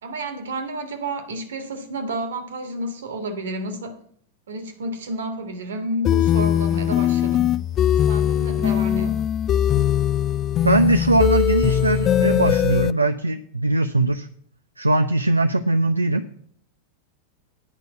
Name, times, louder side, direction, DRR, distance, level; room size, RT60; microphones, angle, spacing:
voice 1, 0.0-4.0 4.5-7.5 8.1-9.2, right 1 dB, 65° right, 1.7 m, -30 dB
sound 1, 6.0-12.9, left 10 dB, 30° left, 0.3 m, -20 dB
voice 2, 10.6-14.3 14.8-16.2, right 2 dB, 85° right, 0.4 m, -20 dB
9.7 x 5.3 x 8.2 m
figure-of-eight pair, 90°, 0 cm